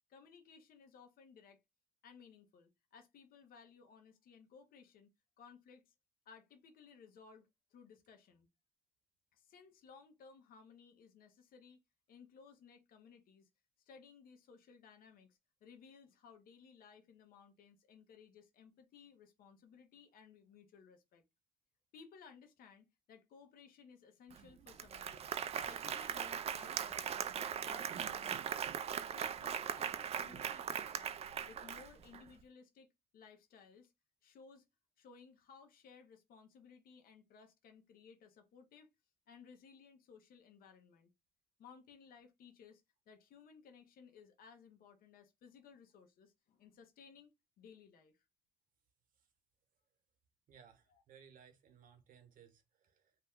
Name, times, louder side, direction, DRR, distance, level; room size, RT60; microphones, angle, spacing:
voice 1, 0.1-1.6 2.0-5.1 5.4-5.9 6.3-8.5 9.3-11.8 12.1-13.5 13.9-21.2 21.9-25.3 25.7-27.3 27.6-28.7 29.1-31.2 31.5-32.9 33.1-33.9 34.2-34.7 35.0-38.9 39.3-41.1 41.6-48.1 50.9-51.0, left 6 dB, 60° left, 0.9 m, -60 dB
Applause, 24.3-24.4 24.7-32.2, right 8 dB, 40° right, 0.4 m, -40 dB
voice 2, 50.5-53.1, right 7 dB, 55° right, 1.0 m, -62 dB
2.8 x 2.2 x 3.6 m
cardioid pair, 110°, 17 cm